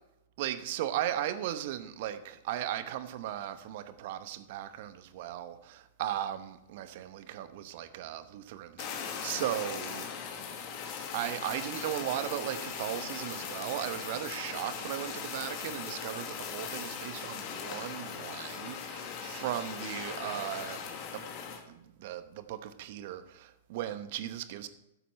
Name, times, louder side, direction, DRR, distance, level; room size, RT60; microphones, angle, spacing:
voice 1, 0.4-10.1 11.1-21.2 21.7-24.7, right 12 dB, 55° right, 0.8 m, -37 dB
Fire, 8.8-21.6, left 7 dB, 45° left, 1.5 m, -39 dB
12.5 x 8.1 x 4.2 m
figure-of-eight pair, 110°, 0 cm